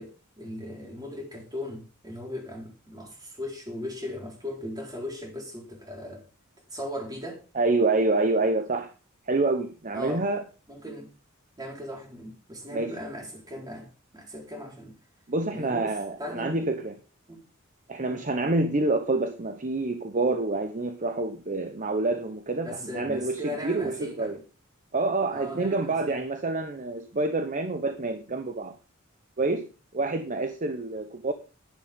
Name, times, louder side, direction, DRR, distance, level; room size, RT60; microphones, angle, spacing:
voice 1, 0.0-6.2 6.7-7.4 9.9-10.2 10.7-11.1 11.6-13.9 14.1-14.9 15.5-16.7 17.3-17.4 18.1-18.2 22.6-24.4 25.3-26.2, left 1 dB, 20° right, 4.2 m, -38 dB
voice 2, 7.5-8.9 9.3-10.4 12.7-12.9 15.3-16.9 17.9-24.4 24.9-28.8 29.4-29.7 29.9-31.3, right 2 dB, 40° right, 0.9 m, -27 dB
11.5 x 10.5 x 3.6 m
head